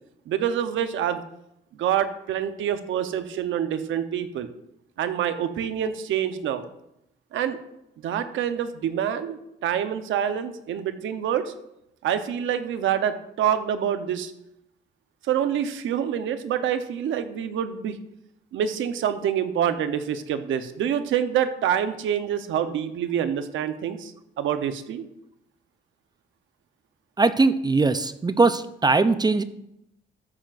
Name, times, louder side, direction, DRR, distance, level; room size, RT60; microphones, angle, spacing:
voice 1, 0.3-1.2 1.8-4.5 5.0-6.7 7.3-7.6 8.0-11.5 12.0-14.3 15.2-18.0 18.5-25.0, right 9 dB, 80° right, 9 dB, 0.9 m, -26 dB
voice 2, 27.2-29.4, right 3 dB, 20° right, 12 dB, 0.6 m, -20 dB
13.5 x 8.9 x 2.6 m, 0.81 s
cardioid pair, 90°, 20 cm